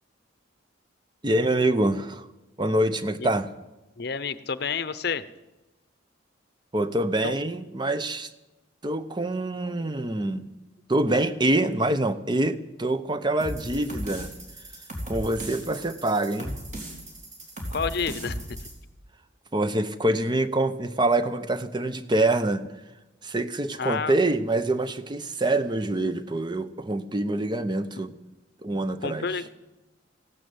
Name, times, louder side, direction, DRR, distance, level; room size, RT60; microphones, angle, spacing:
voice 1, 1.2-2.3 2.6-3.5 6.7-8.3 8.8-10.5 10.9-14.3 15.1-16.6 19.5-22.6 23.2-28.1 28.6-29.3, right 1 dB, 25° right, 11 dB, 0.7 m, -25 dB
voice 2, 4.0-5.2 7.2-7.3 17.7-18.6 23.8-24.1 29.0-29.5, left 5 dB, 55° left, 15 dB, 0.7 m, -29 dB
sound 1, 13.4-18.7, equal, 40° right, 3.6 m, -37 dB
15.5 x 12.0 x 7.9 m, 1.0 s
head